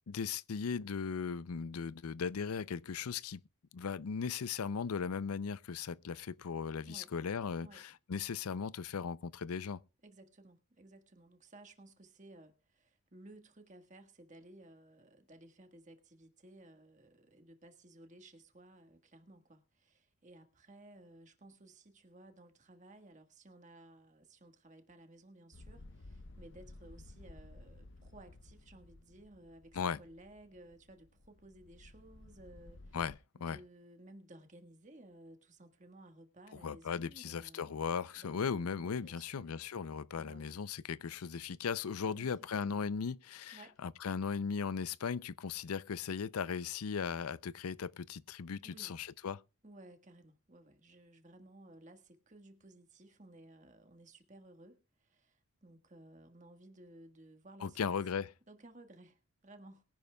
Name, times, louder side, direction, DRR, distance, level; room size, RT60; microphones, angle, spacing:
voice 1, 0.1-3.4 3.7-9.8 29.7-30.0 32.9-33.1 33.4-33.6 36.6-49.4 57.6-58.3, left 6 dB, 90° left, 0.5 m, -37 dB
voice 2, 6.8-7.1 7.6-7.8 10.0-33.0 33.4-37.8 38.2-39.6 40.1-40.6 42.1-42.3 42.6-42.9 43.5-43.8 48.6-49.0 49.6-57.9 58.5-59.8, right 1 dB, 35° right, 1.5 m, -57 dB
sound 1, 25.5-33.2, left 2 dB, 55° left, 0.8 m, -55 dB
22.0 x 10.5 x 2.3 m
head